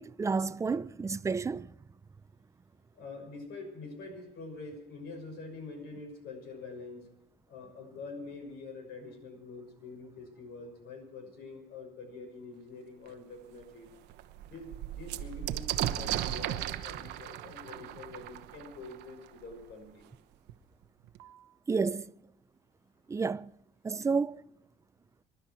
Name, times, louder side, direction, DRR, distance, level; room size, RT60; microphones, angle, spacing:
voice 1, 0.0-1.7 21.7-22.1 23.1-23.5 23.8-24.4, right 4 dB, 20° right, 0.5 m, -31 dB
voice 2, 2.9-7.1 7.5-13.9 14.4-20.0, left 3 dB, 75° left, 6.4 m, -45 dB
sound 1, 13.1-13.2 13.6-13.7 14.0-19.5 20.5-20.6 20.8-21.5, right 13 dB, 90° right, 1.0 m, -36 dB
26.0 x 12.0 x 4.6 m
cardioid pair, 110°, 17 cm